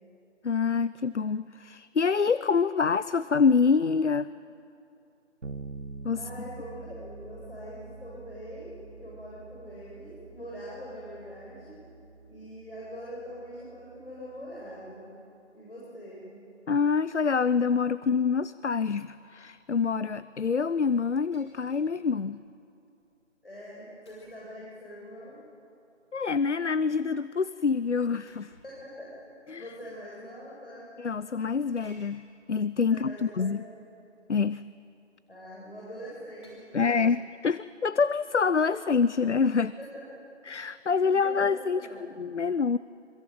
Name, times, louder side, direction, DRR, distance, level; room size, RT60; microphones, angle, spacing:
voice 1, 0.4-4.3 6.0-6.3 16.7-22.4 26.1-28.5 29.5-29.7 31.0-33.6 34.3-34.6 36.7-39.7 40.5-42.8, left 5 dB, 70° left, 16 dB, 0.6 m, -26 dB
Bass guitar, 5.4-15.1, right 3 dB, 80° right, 1.4 m, -46 dB
voice 2, 6.2-11.8 12.3-15.1 15.5-16.3 23.4-25.4 28.6-29.1 29.6-30.9 32.9-33.8 35.3-37.0 39.8-40.2 41.1-42.0, equal, 50° left, -6 dB, 7.8 m, -43 dB
sound 1, 21.0-21.9 22.5-22.6 24.1-24.6 26.2-26.9 28.3-28.8 29.8-29.9 31.8-32.2 33.6-33.7 34.2-34.4 36.4-37.2, equal, 20° left, 5.0 m, -59 dB
25.5 x 21.5 x 9.3 m, 2.7 s
figure-of-eight pair, 180°, 37 cm